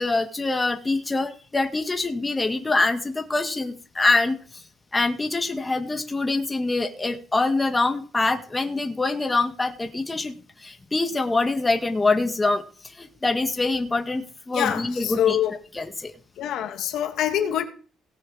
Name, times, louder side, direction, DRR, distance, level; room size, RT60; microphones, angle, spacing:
voice 1, 0.0-4.4 4.9-12.6 12.9-15.4 15.7-16.1, left 3 dB, 20° left, 1.8 m, -24 dB
voice 2, 14.5-15.6 16.4-17.6, left 10 dB, 85° left, 1.7 m, -25 dB
17.5 x 6.3 x 5.0 m
cardioid pair, 90°, 0 cm